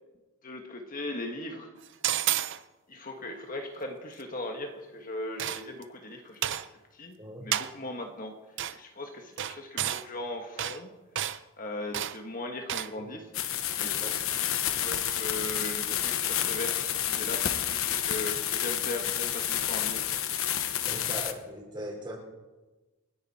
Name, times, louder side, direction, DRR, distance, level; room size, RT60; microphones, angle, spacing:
voice 1, 0.4-1.7 2.9-6.4 6.9-7.2 7.4-8.3 8.7-10.9 11.6-13.3 13.8-20.0, left 2 dB, 40° left, 3 dB, 1.5 m, -38 dB
sound 1, 2.0-2.6 5.4-5.8 6.4-6.7 7.5-7.7 8.6-8.8 9.4-10.1 10.6-10.8 11.2-11.4 11.9-12.2 12.7-12.9, right 11 dB, 55° right, 0.6 m, -30 dB
sound 2, 13.3-21.3, left 10 dB, 75° left, 1.1 m, -30 dB
voice 2, 20.8-22.2, equal, 20° right, -1 dB, 4.6 m, -39 dB
28.5 x 10.5 x 4.3 m, 1.2 s
head